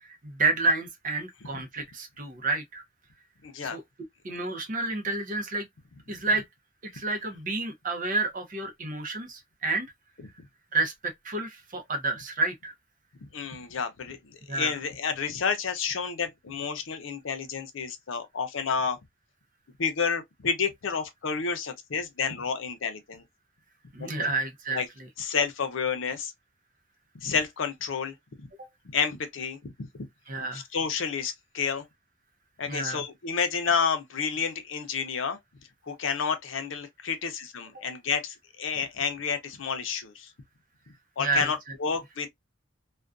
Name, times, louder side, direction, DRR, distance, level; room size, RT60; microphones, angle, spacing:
voice 1, 0.0-2.8 3.7-3.8 4.2-5.7 6.1-6.4 6.9-9.9 10.7-12.7 14.5-14.7 23.9-24.8 30.3-30.6 32.7-33.0 41.2-41.5, right 3 dB, 45° right, 0.6 m, -29 dB
voice 2, 3.4-3.8 13.2-19.0 19.8-23.2 24.0-24.3 24.7-24.9 25.2-26.3 27.2-28.2 28.9-29.7 30.5-31.9 32.6-35.4 35.9-40.3 41.2-42.3, left 6 dB, 80° left, 0.6 m, -30 dB
2.4 x 2.2 x 2.3 m
head